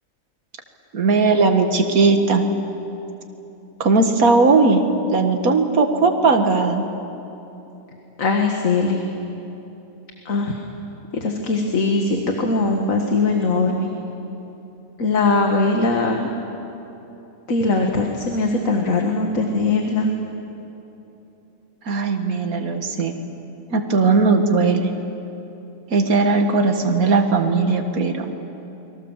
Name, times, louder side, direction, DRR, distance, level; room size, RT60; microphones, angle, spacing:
voice 1, 0.9-2.5 3.8-4.8 5.1-6.9 21.9-23.2 23.7-24.9 25.9-28.4, right 3 dB, 85° right, 5 dB, 2.2 m, -18 dB
voice 2, 8.2-9.0 10.3-10.6 11.2-13.9 15.0-16.3 17.5-20.1, left 3 dB, 65° left, 2 dB, 2.1 m, -20 dB
29.5 x 23.0 x 7.4 m, 3.0 s
omnidirectional pair, 1.5 m